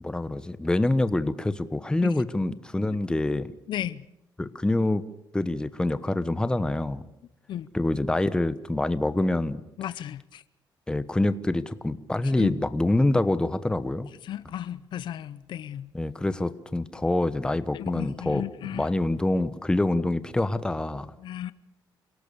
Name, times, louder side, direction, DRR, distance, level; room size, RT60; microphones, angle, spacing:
voice 1, 0.0-3.5 4.4-5.0 5.3-7.0 7.7-9.6 10.9-14.1 15.9-21.1, left 2 dB, 10° left, 1.1 m, -26 dB
voice 2, 3.7-4.0 7.5-7.7 9.8-10.4 12.4-12.5 14.3-15.9 17.7-18.8 21.2-21.5, left 11 dB, 70° left, 0.8 m, -34 dB
28.5 x 18.0 x 7.0 m
cardioid pair, 120°, 8 cm